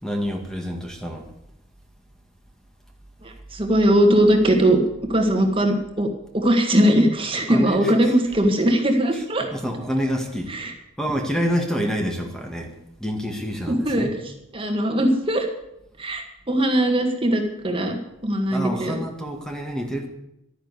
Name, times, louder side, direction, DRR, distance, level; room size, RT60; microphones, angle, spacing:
voice 1, 0.0-1.3 7.5-8.1 9.1-9.2 9.5-10.5 11.0-12.7 13.0-14.2 18.5-20.1, equal, 5° left, 3 dB, 1.8 m, -27 dB
voice 2, 3.2-4.8 5.1-6.1 6.3-9.5 10.5-10.7 13.7-14.2 14.5-15.5 16.0-18.0 18.2-19.0, right 1 dB, 25° right, 3 dB, 1.7 m, -20 dB
12.5 x 10.0 x 8.3 m, 0.82 s
head